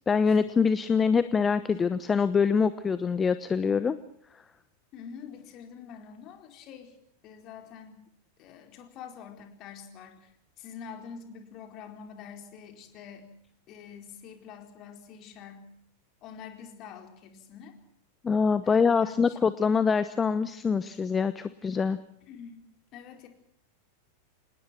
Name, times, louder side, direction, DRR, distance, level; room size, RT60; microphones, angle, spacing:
voice 1, 0.1-4.0 18.2-22.0, left 5 dB, 15° left, 14 dB, 1.0 m, -24 dB
voice 2, 4.9-7.0 7.2-8.0 8.4-10.3 10.6-13.3 13.7-15.7 16.2-17.8 18.6-19.4 22.2-22.6 22.9-23.3, left 7 dB, 35° left, 5 dB, 4.5 m, -46 dB
27.0 x 20.0 x 6.1 m, 0.70 s
figure-of-eight pair, 90°, 0 cm